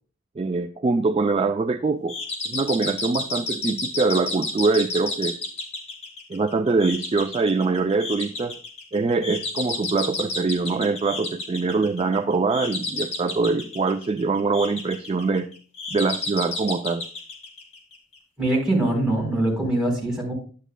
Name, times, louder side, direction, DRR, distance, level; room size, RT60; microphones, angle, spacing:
voice 1, 0.4-2.2 2.5-5.4 6.3-8.5 8.9-15.5 15.9-17.1, right 3 dB, 30° right, 0.3 m, -23 dB
sound 1, 2.1-18.2, left 2 dB, 30° left, 2.0 m, -32 dB
voice 2, 18.4-20.3, right 1 dB, 5° right, 3.9 m, -23 dB
10.0 x 9.9 x 2.2 m
head